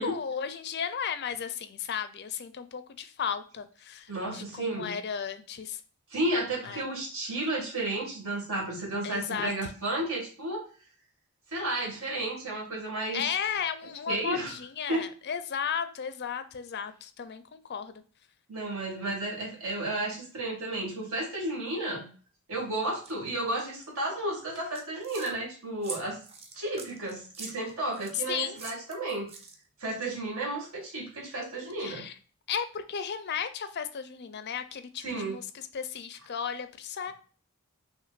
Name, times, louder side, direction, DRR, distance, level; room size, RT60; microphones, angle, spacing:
voice 1, 0.0-5.8 6.6-6.9 9.0-9.7 13.1-18.0 28.3-28.6 31.8-32.1 32.5-37.1, left 7 dB, 50° left, 11 dB, 0.5 m, -35 dB
voice 2, 4.1-4.9 6.1-10.6 11.5-13.2 13.8-14.5 14.9-15.1 18.5-22.1 22.5-26.2 26.6-29.3 29.8-32.0 35.0-35.4, right 1 dB, 70° right, -1 dB, 1.9 m, -32 dB
sound 1, 23.0-23.1 23.6-23.9 24.5-25.3 25.8-28.2 28.6-29.8, right 4 dB, 30° right, 0.6 m, -43 dB
5.8 x 2.9 x 2.4 m, 0.40 s
head